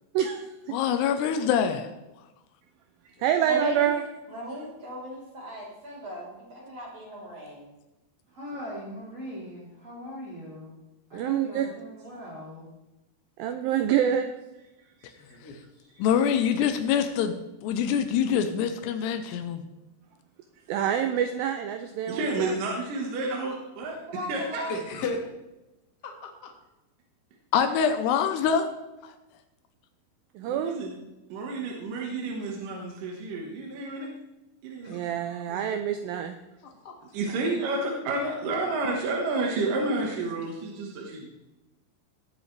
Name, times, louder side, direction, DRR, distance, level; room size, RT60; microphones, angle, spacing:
voice 1, 0.1-0.8 3.2-4.0 11.1-11.7 13.4-14.3 15.0-15.1 20.7-22.5 30.4-30.8 34.8-36.4, right 9 dB, 80° right, 7 dB, 2.1 m, -27 dB
voice 2, 0.7-1.9 16.0-17.3 17.6-19.6 27.5-28.7 29.0-29.1, left 7 dB, 90° left, 7 dB, 2.9 m, -25 dB
voice 3, 3.5-3.9 4.3-7.7 24.1-24.7, equal, 40° right, -5 dB, 4.1 m, -37 dB
voice 4, 8.3-10.7 11.1-12.7, equal, 20° right, -8 dB, 2.6 m, -40 dB
voice 5, 15.0-15.6 24.7-25.2 26.0-26.5 34.8-35.1 35.5-35.8 36.6-37.0, left 3 dB, 55° left, 1 dB, 1.1 m, -36 dB
voice 6, 22.1-24.0 24.3-24.6 30.4-30.9 31.3-34.1 34.6-35.0 37.1-41.3, right 2 dB, 65° right, -1 dB, 2.7 m, -30 dB
19.0 x 8.0 x 3.3 m, 0.99 s
omnidirectional pair, 4.7 m